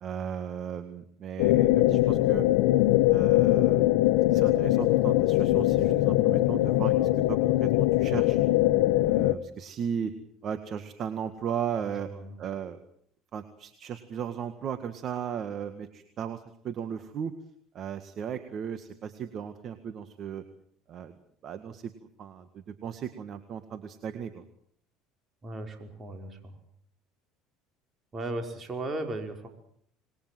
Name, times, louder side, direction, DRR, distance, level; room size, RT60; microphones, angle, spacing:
voice 1, 0.0-2.5 3.1-3.9 4.3-8.4 9.0-10.1 10.4-12.1 12.4-12.8 13.3-17.3 17.7-20.4 20.9-21.1 21.4-21.9 22.2-24.4, right 8 dB, 45° right, 10 dB, 1.8 m, -36 dB
sound 1, 1.4-9.3, left 16 dB, 85° left, 1.1 m, -22 dB
voice 2, 11.9-12.4 25.4-26.6 28.1-29.5, right 2 dB, 30° right, 5 dB, 5.3 m, -36 dB
27.0 x 21.0 x 7.9 m, 0.67 s
supercardioid pair, 120°, 0 cm